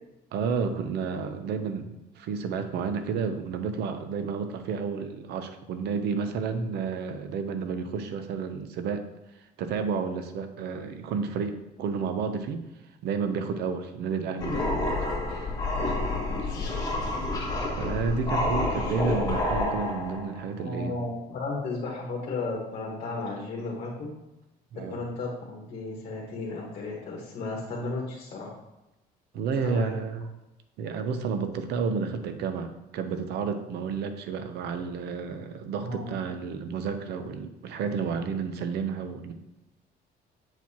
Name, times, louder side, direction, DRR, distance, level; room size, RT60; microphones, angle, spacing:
voice 1, 0.3-9.0 9.6-12.6 13.0-15.0 15.3-15.4 17.8-21.0 24.7-25.0 29.3-30.3 30.8-39.3, right 5 dB, 75° right, 8 dB, 0.7 m, -31 dB
sound 1, 14.4-20.4, left 2 dB, 25° left, 1.8 m, -29 dB
voice 2, 16.3-17.1 18.2-18.3 20.6-24.1 24.9-28.5 29.6-29.9 35.8-36.1, left 3 dB, 50° left, -3 dB, 1.5 m, -34 dB
7.8 x 4.5 x 2.8 m, 0.96 s
cardioid pair, 110°, 17 cm